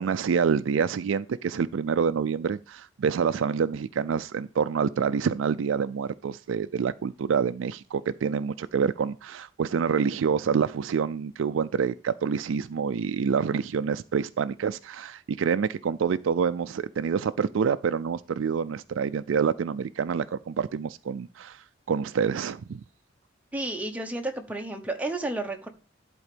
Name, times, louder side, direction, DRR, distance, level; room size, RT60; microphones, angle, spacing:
voice 1, 0.0-22.8, right 6 dB, 90° right, 0.4 m, -27 dB
voice 2, 23.5-25.7, right 2 dB, 10° right, 1.0 m, -31 dB
11.0 x 4.3 x 5.1 m
head